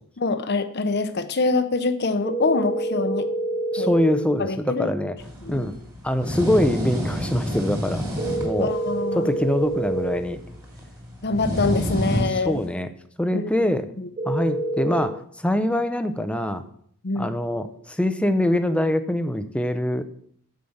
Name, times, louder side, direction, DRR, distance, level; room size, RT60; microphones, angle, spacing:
voice 1, 0.2-3.3 3.8-3.9 4.4-4.9 5.4-5.7 8.6-9.3 11.2-12.6 13.3-13.5 14.0-14.1 17.0-17.3, left 3 dB, 50° left, 10 dB, 0.8 m, -25 dB
sound 1, 2.2-4.2 8.2-10.2 14.2-15.0, right 1 dB, 35° right, 2.2 m, -27 dB
voice 2, 3.7-5.2 5.5-5.7 6.0-8.0 8.4-8.7 9.1-10.4 12.3-12.9 13.2-13.9 14.3-16.6 17.2-20.0, left 1 dB, 5° left, 9 dB, 0.6 m, -24 dB
sound 2, 5.2-12.7, equal, 15° right, 2.5 m, -30 dB
9.5 x 5.1 x 7.2 m, 0.63 s
head